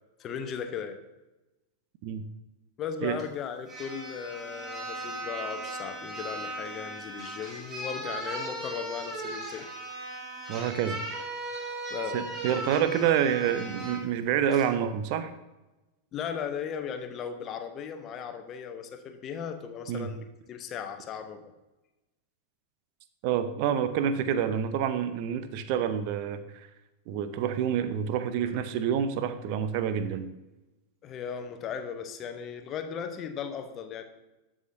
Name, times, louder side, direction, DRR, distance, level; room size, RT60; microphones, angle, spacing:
voice 1, 0.2-1.0 2.8-9.7 11.9-12.2 16.1-21.5 31.0-34.0, left 7 dB, 30° left, 7 dB, 0.8 m, -37 dB
sound 1, 3.2-3.3 3.7-14.0 14.5-14.7, right 1 dB, 20° right, 1.8 m, -38 dB
voice 2, 10.5-11.0 12.1-15.3 19.9-20.1 23.2-26.7 27.1-30.3, right 9 dB, 45° right, 11 dB, 0.6 m, -28 dB
12.5 x 5.0 x 2.7 m, 1.0 s
figure-of-eight pair, 90°, 0 cm